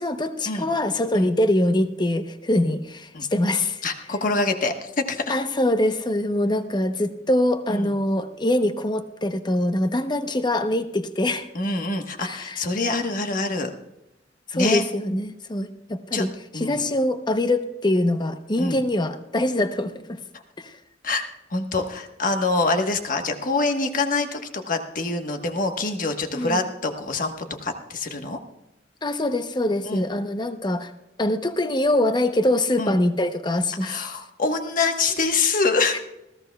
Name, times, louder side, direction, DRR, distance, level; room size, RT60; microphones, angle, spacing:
voice 1, 0.0-3.8 5.3-11.5 12.2-12.6 14.5-16.3 16.5-20.2 20.6-20.8 26.3-26.6 29.0-30.9 31.2-34.2 35.9-36.0, left 1 dB, 25° left, 9 dB, 0.8 m, -24 dB
voice 2, 3.8-5.4 7.7-7.9 11.5-13.7 14.5-14.8 16.1-16.2 16.5-16.8 18.6-18.8 21.0-27.3 27.6-28.4 29.8-30.1 32.8-32.9 33.8-36.0, left 3 dB, 50° left, 5 dB, 1.3 m, -25 dB
20.0 x 15.0 x 2.3 m, 0.92 s
head